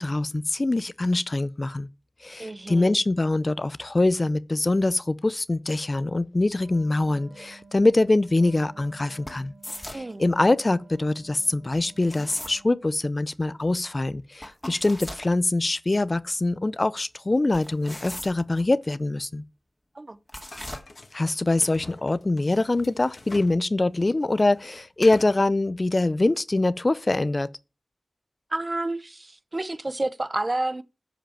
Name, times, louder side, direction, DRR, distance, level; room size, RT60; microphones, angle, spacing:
voice 1, 0.0-1.9 2.2-9.5 9.9-19.4 21.1-27.5, left 2 dB, 40° left, 0.5 m, -24 dB
voice 2, 2.4-2.9 9.9-10.2 19.9-20.2 28.5-30.8, right 2 dB, 35° right, 0.7 m, -30 dB
Wind instrument woodwind instrument, 6.5-13.0, right 3 dB, 60° right, 2.2 m, -52 dB
sound 1, 9.3-10.1 12.0-12.6 14.4-15.3 17.5-18.6 20.3-20.8, left 1 dB, 15° left, 2.0 m, -38 dB
sound 2, 20.5-23.6 23.9-25.5, left 2 dB, 60° left, 1.6 m, -43 dB
10.5 x 5.1 x 7.1 m
wide cardioid pair, 60°, 0 cm